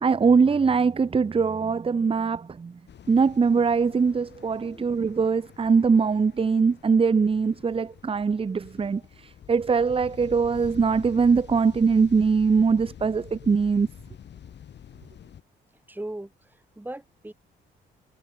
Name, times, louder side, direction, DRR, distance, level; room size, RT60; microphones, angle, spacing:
voice 1, 0.0-2.8 3.1-13.9, right 5 dB, 30° right, 0.9 m, -22 dB
sound 1, 2.9-15.4, left 9 dB, 60° left, 5.5 m, -47 dB
voice 2, 4.6-5.0 12.6-12.7 15.9-17.3, right 1 dB, 10° right, 6.4 m, -39 dB
cardioid pair, 90°, 20 cm